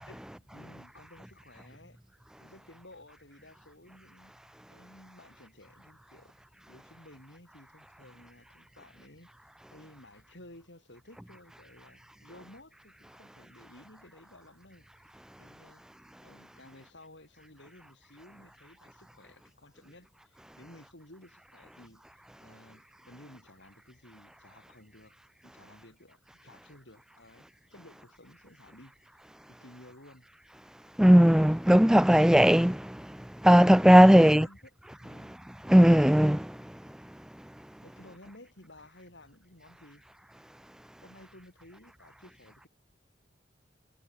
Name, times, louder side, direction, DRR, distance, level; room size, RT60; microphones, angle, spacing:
voice 1, 0.0-2.0 2.4-4.4 4.7-6.3 6.7-9.3 9.7-15.1 15.4-15.8 16.2-25.1 25.4-29.2 29.6-30.3 34.0-34.7 35.0-35.4 37.8-40.0 41.0-42.7, left 1 dB, 75° left, 6.7 m, -54 dB
voice 2, 31.0-33.0 33.4-34.5 35.7-36.5, equal, 5° right, 0.4 m, -18 dB
head